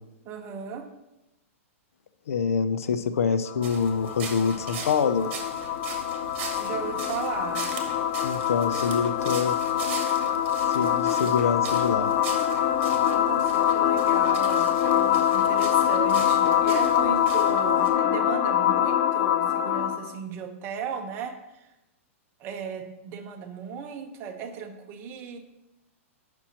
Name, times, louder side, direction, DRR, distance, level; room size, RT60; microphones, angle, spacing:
voice 1, 0.2-0.9 6.6-7.7 13.0-21.7 22.4-25.4, right 6 dB, 30° right, 4 dB, 0.9 m, -36 dB
voice 2, 2.3-5.3 8.2-9.5 10.7-12.1, left 6 dB, 90° left, 11 dB, 0.5 m, -25 dB
sound 1, 3.5-20.1, left 10 dB, 40° left, 0.5 m, -24 dB
sound 2, 3.6-17.9, right 5 dB, 50° right, 1.3 m, -40 dB
8.7 x 6.1 x 2.9 m, 0.96 s
hypercardioid pair, 145°, 8 cm